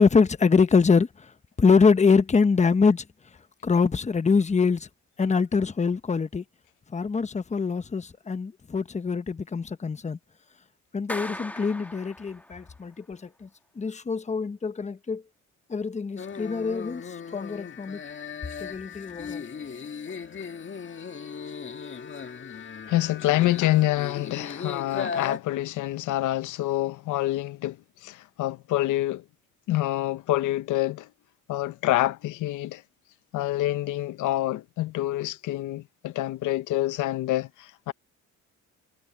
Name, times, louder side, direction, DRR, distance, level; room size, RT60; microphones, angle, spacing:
voice 1, 0.0-1.3 1.6-3.0 3.6-4.9 5.2-6.4 6.9-10.2 10.9-13.5 13.8-15.2 15.7-18.0 18.6-19.4, left 5 dB, 25° left, 1.0 m, -24 dB
Clapping, 11.1-12.7, left 1 dB, 5° left, 1.3 m, -38 dB
sound 1, 16.2-25.4, left 6 dB, 40° left, 2.0 m, -37 dB
voice 2, 22.9-29.2 29.7-31.1 31.5-32.8 33.3-37.9, left 15 dB, 85° left, 0.9 m, -27 dB
cardioid pair, 90°, 30 cm